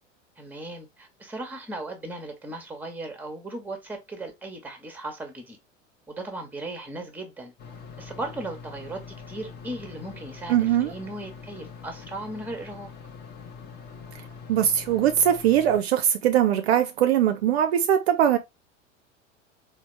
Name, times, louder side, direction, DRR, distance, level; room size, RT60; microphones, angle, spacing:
voice 1, 0.4-5.6 6.1-7.5 8.0-12.9, right 2 dB, 5° right, 0.9 m, -37 dB
sound 1, 7.6-15.8, left 5 dB, 25° left, 0.8 m, -43 dB
voice 2, 10.5-10.9 14.5-18.4, right 10 dB, 55° right, 0.5 m, -21 dB
4.0 x 2.0 x 3.0 m
figure-of-eight pair, 80°, 38 cm